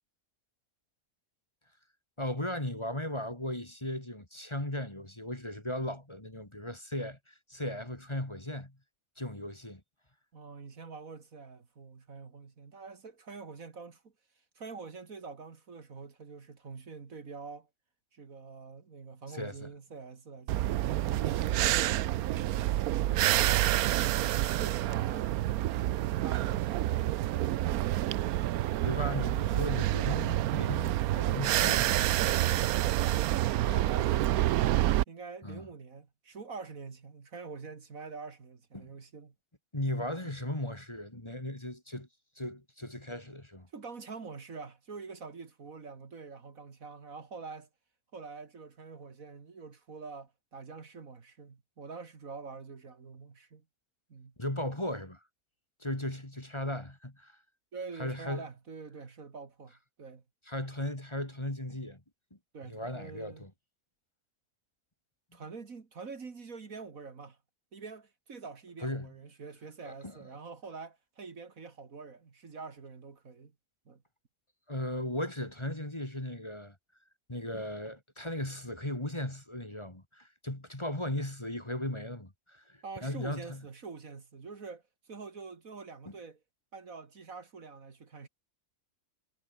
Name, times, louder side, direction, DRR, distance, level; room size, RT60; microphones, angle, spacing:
voice 1, 2.2-8.7 9.2-9.8 19.3-19.7 21.0-21.1 28.8-32.6 35.4-35.6 38.7-38.9 39.7-42.1 42.4-43.7 54.4-55.2 55.8-57.3 58.0-58.4 60.5-62.0 62.7-63.5 68.8-69.1 69.8-70.2 74.7-76.7 77.3-83.6, left 1 dB, 15° left, 2.7 m, -37 dB
voice 2, 10.3-14.1 14.6-17.7 18.1-23.4 24.5-25.4 26.0-27.2 32.9-33.2 33.6-34.5 35.1-39.3 40.2-40.3 43.7-47.7 48.1-53.6 54.1-54.3 57.7-60.2 62.5-63.5 65.3-67.4 67.7-73.5 73.9-74.0 82.8-86.4 86.7-88.3, right 4 dB, 60° right, 2.4 m, -46 dB
sound 1, 20.5-35.0, right 14 dB, 75° right, 1.0 m, -28 dB
omnidirectional pair, 1.7 m